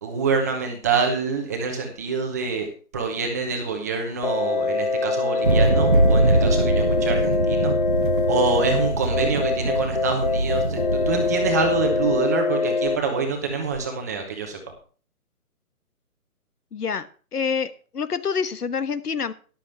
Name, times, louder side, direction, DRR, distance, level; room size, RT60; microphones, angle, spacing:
voice 1, 0.0-2.7 2.9-7.7 8.3-10.8 11.1-14.6, right 4 dB, 10° right, 3 dB, 0.9 m, -26 dB
sound 1, 4.2-13.0, left 4 dB, 30° left, 0.7 m, -24 dB
sound 2, 5.4-12.2, right 2 dB, 40° right, 0.4 m, -23 dB
voice 2, 16.7-17.1 17.3-19.3, left 6 dB, 80° left, 13 dB, 1.4 m, -27 dB
13.0 x 11.5 x 3.4 m, 0.39 s
hypercardioid pair, 165°, 45 cm